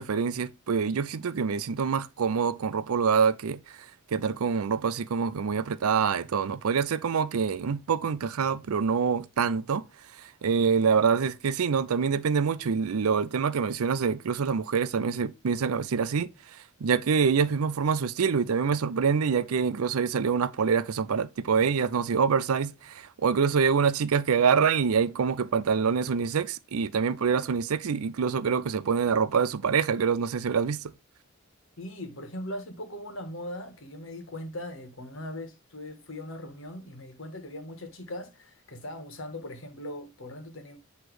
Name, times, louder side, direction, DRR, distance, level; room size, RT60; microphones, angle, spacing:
voice 1, 0.0-3.8 4.1-9.9 10.2-16.3 16.8-30.9, right 6 dB, 90° right, 0.5 m, -26 dB
voice 2, 31.8-40.8, left 1 dB, 65° left, 1.4 m, -40 dB
8.0 x 3.1 x 4.7 m
head